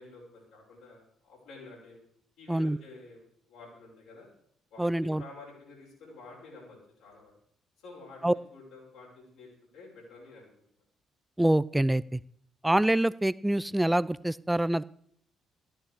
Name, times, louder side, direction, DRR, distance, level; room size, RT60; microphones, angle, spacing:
voice 1, 0.0-2.0 2.4-3.2 3.5-4.3 4.7-7.3 7.8-10.5, left 3 dB, 70° left, -5 dB, 6.5 m, -50 dB
voice 2, 4.8-5.2 8.2-8.3 11.4-12.2 12.6-14.8, right 1 dB, 10° right, 20 dB, 0.5 m, -25 dB
13.5 x 12.5 x 5.0 m, 0.66 s
hypercardioid pair, 45°, 0 cm